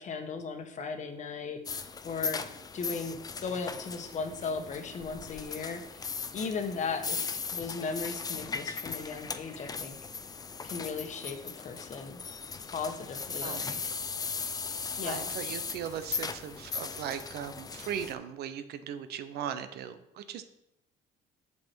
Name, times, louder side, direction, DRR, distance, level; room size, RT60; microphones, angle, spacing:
voice 1, 0.0-6.1 6.3-10.0 10.6-12.2 12.7-13.8 15.0-15.3, left 5 dB, 45° left, 6 dB, 1.1 m, -37 dB
sound 1, 1.7-18.1, left 5 dB, 20° left, 0.5 m, -38 dB
voice 2, 13.4-13.8 15.0-20.4, right 9 dB, 75° right, 11 dB, 0.8 m, -38 dB
7.9 x 5.8 x 4.5 m, 0.83 s
cardioid pair, 110°, 17 cm